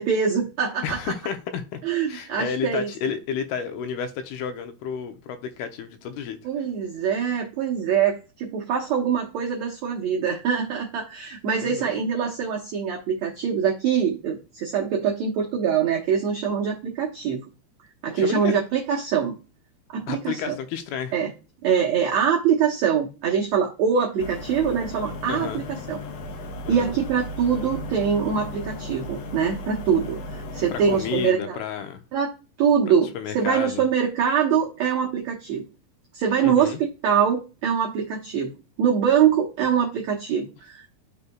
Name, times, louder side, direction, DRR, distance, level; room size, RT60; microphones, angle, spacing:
voice 1, 0.0-1.0 1.8-2.9 6.4-17.4 18.0-19.3 19.9-20.6 21.1-21.3 21.6-26.0 26.7-31.6 32.1-32.3 32.6-35.6 36.1-38.5 38.8-40.9, right 7 dB, 85° right, 1.5 m, -24 dB
voice 2, 0.8-1.8 2.1-6.4 11.6-11.9 18.2-18.6 20.1-21.1 25.3-25.6 26.6-27.0 30.7-32.0 33.1-33.8 36.4-36.8, left 7 dB, 85° left, 2.6 m, -31 dB
sound 1, 24.2-31.3, left 1 dB, 70° left, 2.1 m, -35 dB
11.5 x 4.1 x 2.2 m
omnidirectional pair, 4.5 m